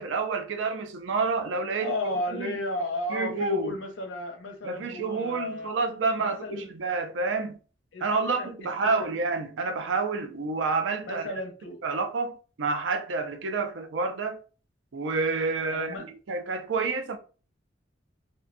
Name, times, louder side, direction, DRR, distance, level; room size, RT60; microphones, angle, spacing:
voice 1, 0.0-1.9 2.3-2.6 3.1-3.8 4.6-7.6 8.0-11.3 11.8-14.4 14.9-17.2, right 4 dB, 70° right, 0.4 m, -29 dB
voice 2, 1.8-5.7 6.2-6.7 7.9-8.5 8.8-9.1 11.1-11.8 15.7-16.1, left 1 dB, 75° left, 0.6 m, -33 dB
2.5 x 2.2 x 2.4 m
head